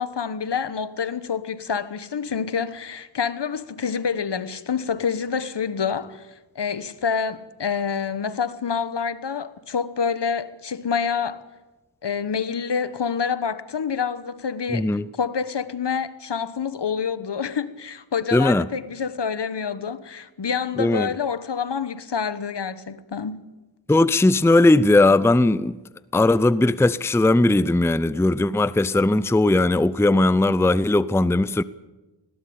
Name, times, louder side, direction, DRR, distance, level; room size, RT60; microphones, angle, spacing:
voice 1, 0.0-6.3 6.5-11.4 12.0-23.4, left 6 dB, 60° left, 1.3 m, -27 dB
voice 2, 14.7-15.1 18.3-18.7 20.8-21.1 23.9-25.8 26.1-31.6, left 2 dB, 5° left, 0.6 m, -18 dB
20.0 x 17.5 x 8.7 m
cardioid pair, 50°, 47 cm